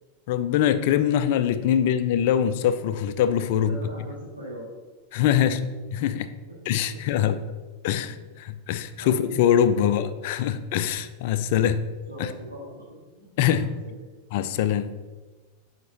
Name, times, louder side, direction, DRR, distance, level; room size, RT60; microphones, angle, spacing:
voice 1, 0.3-3.8 5.1-5.6 6.0-6.3 6.7-7.4 7.8-11.8 13.4-13.7 14.3-14.9, left 9 dB, 50° left, 0.4 m, -23 dB
voice 2, 3.5-4.7 6.6-6.7 7.9-8.2 8.6-9.3 9.6-9.8 12.1-14.0, right 1 dB, 85° right, 2.1 m, -41 dB
9.2 x 5.8 x 2.9 m
figure-of-eight pair, 90°, 0 cm